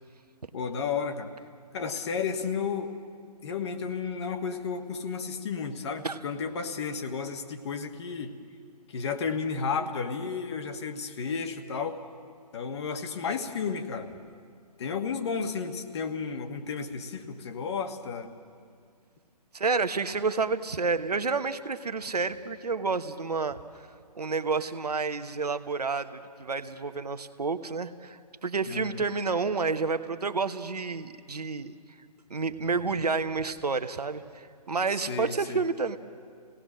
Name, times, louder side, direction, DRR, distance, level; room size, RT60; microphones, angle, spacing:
voice 1, 0.5-1.3 1.7-2.9 3.4-8.3 8.9-12.0 12.5-14.1 14.8-18.3 28.7-29.0 34.9-35.6, left 5 dB, 40° left, 6 dB, 1.5 m, -32 dB
voice 2, 19.5-23.6 24.2-31.7 32.3-36.0, right 4 dB, 70° right, 10 dB, 1.1 m, -30 dB
28.0 x 18.0 x 6.3 m, 2.1 s
figure-of-eight pair, 130°, 21 cm